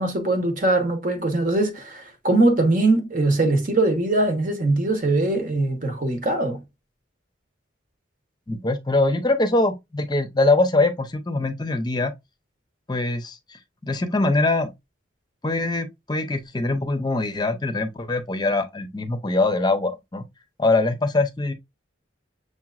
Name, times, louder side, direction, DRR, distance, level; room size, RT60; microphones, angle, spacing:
voice 1, 0.0-6.6, right 2 dB, 45° right, 1.1 m, -21 dB
voice 2, 8.5-12.1 12.9-14.7 15.4-20.2 20.6-21.5, left 2 dB, 20° left, 0.7 m, -23 dB
6.6 x 3.0 x 2.4 m
head